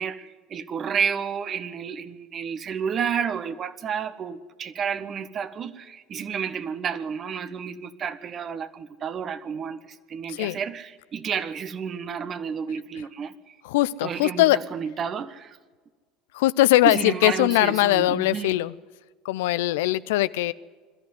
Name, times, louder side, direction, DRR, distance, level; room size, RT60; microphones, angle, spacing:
voice 1, 0.0-13.5 14.0-15.6 16.8-18.5, right 7 dB, 40° right, 12 dB, 1.4 m, -31 dB
voice 2, 13.6-14.6 16.3-18.7 19.2-20.5, left 16 dB, 70° left, 16 dB, 0.5 m, -21 dB
22.0 x 13.5 x 9.5 m, 1.4 s
hypercardioid pair, 70°, 0 cm